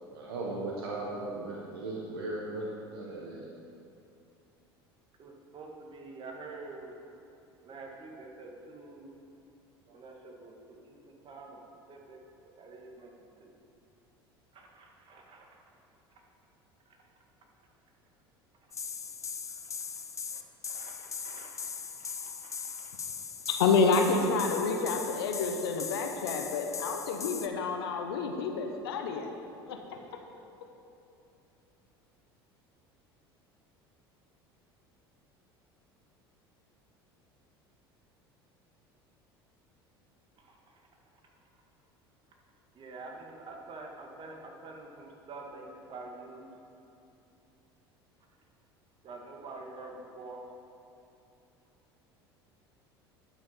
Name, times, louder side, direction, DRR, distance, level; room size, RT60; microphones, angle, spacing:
voice 1, 0.1-3.4, right 2 dB, 75° right, -3 dB, 1.1 m, -37 dB
voice 2, 5.2-7.0 7.6-9.1 9.9-11.6 11.9-12.2 12.4-13.5 14.5-15.6 16.9-17.0 19.6-20.4 20.7-22.9 40.4-40.8 42.7-46.5 49.0-50.4, right 3 dB, 40° right, 1 dB, 1.7 m, -47 dB
sound 1, 18.7-27.5, left 6 dB, 25° left, 0.6 m, -39 dB
voice 3, 23.5-29.3 29.7-29.8, left 4 dB, 75° left, 4 dB, 0.9 m, -28 dB
11.0 x 6.0 x 5.6 m, 2.8 s
hypercardioid pair, 70°, 13 cm